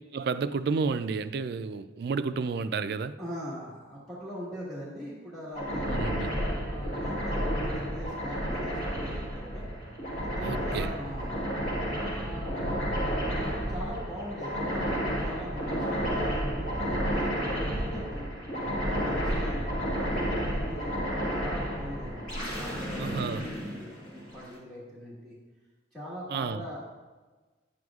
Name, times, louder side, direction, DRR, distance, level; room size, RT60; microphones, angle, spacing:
voice 1, 0.1-3.1 5.9-6.3 10.4-10.9 23.0-23.5 26.3-26.6, right 5 dB, 55° right, 0.3 m, -31 dB
voice 2, 3.2-6.0 6.6-9.6 10.2-11.4 12.0-13.0 13.4-18.3 18.8-21.0 21.3-25.4 25.9-26.8, equal, ahead, 1.5 m, -42 dB
sound 1, 5.5-24.4, equal, 40° left, 2.0 m, -31 dB
10.0 x 7.7 x 2.4 m
head